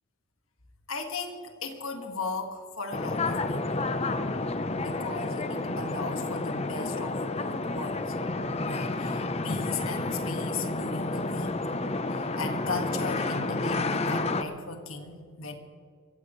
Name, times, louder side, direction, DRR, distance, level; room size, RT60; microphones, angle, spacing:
voice 1, 0.9-3.9 4.8-8.1 8.6-11.6 12.1-15.6, left 4 dB, 75° left, 4 dB, 1.8 m, -37 dB
sound 1, 2.9-14.4, left 2 dB, 30° left, 0.7 m, -30 dB
23.0 x 15.5 x 3.2 m, 2.2 s
head